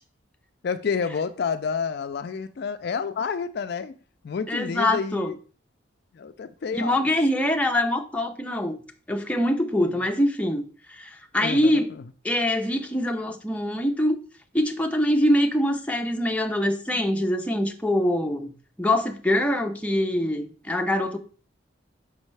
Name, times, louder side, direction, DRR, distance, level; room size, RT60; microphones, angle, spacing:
voice 1, 0.6-3.9 4.2-5.4 6.1-7.1 9.8-10.0 11.4-12.0, left 5 dB, 55° left, 0.3 m, -29 dB
voice 2, 4.5-5.3 6.7-8.8 9.1-10.6 10.9-11.9 12.2-14.2 14.5-18.5 18.8-21.2, left 1 dB, 5° left, 0.6 m, -24 dB
6.3 x 5.3 x 3.2 m
head